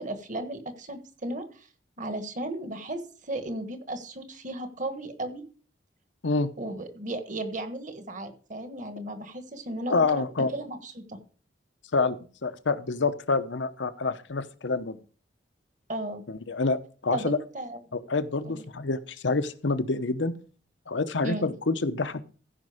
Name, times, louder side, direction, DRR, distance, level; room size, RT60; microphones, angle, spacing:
voice 1, 0.0-1.7 2.0-5.4 6.6-10.3 10.5-11.2 15.9-16.2 17.1-17.8 18.4-18.6 21.2-21.5, right 1 dB, 45° right, 8 dB, 1.4 m, -35 dB
voice 2, 9.9-10.5 11.9-15.0 16.3-17.4 17.9-20.3 20.9-22.2, left 3 dB, 80° left, 11 dB, 0.9 m, -27 dB
15.0 x 5.3 x 5.0 m, 0.39 s
head